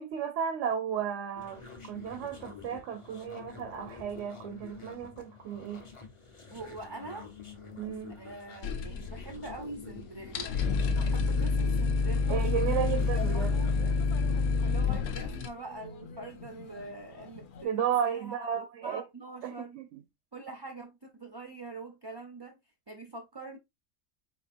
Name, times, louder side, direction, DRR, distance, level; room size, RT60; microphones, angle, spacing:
voice 1, 0.0-5.8 7.8-8.2 12.3-13.5 17.6-19.0 19.4-20.0, right 8 dB, 70° right, 0.9 m, -33 dB
sound 1, 1.4-13.7, left 5 dB, 25° left, 0.9 m, -48 dB
voice 2, 6.5-7.3 8.2-12.4 13.1-13.8 14.6-19.8 20.3-22.6 22.9-23.6, right 2 dB, 35° right, 0.4 m, -44 dB
sound 2, 8.6-9.6 9.9-10.0 10.2-15.5, left 4 dB, 80° left, 1.0 m, -28 dB
sound 3, 12.3-17.6, left 7 dB, 55° left, 0.6 m, -46 dB
4.4 x 3.8 x 2.5 m
omnidirectional pair, 1.4 m